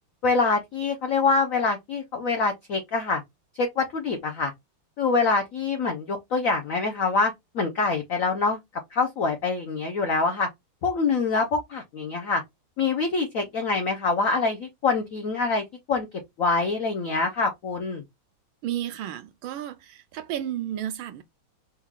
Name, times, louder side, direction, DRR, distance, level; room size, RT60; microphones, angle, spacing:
voice 1, 0.2-3.2 3.6-4.5 5.0-8.6 8.9-10.5 10.8-12.4 12.8-16.1 16.4-18.0, left 4 dB, 80° left, 0.7 m, -25 dB
voice 2, 18.6-21.2, right 11 dB, 75° right, 1.3 m, -32 dB
4.4 x 2.4 x 3.6 m
omnidirectional pair, 2.4 m